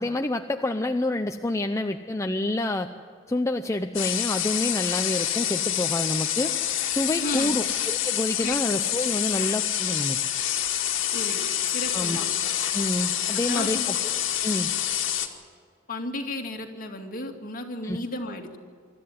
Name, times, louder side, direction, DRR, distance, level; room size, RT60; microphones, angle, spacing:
voice 1, 0.0-2.9 3.3-6.5 6.9-10.2 11.9-12.2 12.7-14.7 17.8-18.0, left 1 dB, 15° left, 5 dB, 0.6 m, -28 dB
sound 1, 3.9-15.3, left 11 dB, 65° left, 1.9 m, -27 dB
voice 2, 7.2-7.6 8.4-8.5 11.1-11.4 11.7-12.3 13.4-13.9 15.9-18.6, left 2 dB, 45° left, 2 dB, 2.4 m, -33 dB
25.0 x 13.5 x 9.6 m, 2.1 s
head